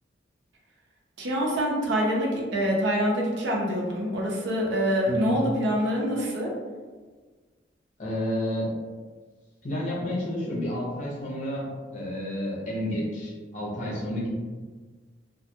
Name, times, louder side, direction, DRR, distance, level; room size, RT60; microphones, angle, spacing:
voice 1, 1.2-6.5, equal, 80° right, -2 dB, 0.6 m, -25 dB
voice 2, 8.0-8.7 9.6-14.3, left 1 dB, 40° left, -5 dB, 0.7 m, -30 dB
2.2 x 2.1 x 2.8 m, 1.4 s
head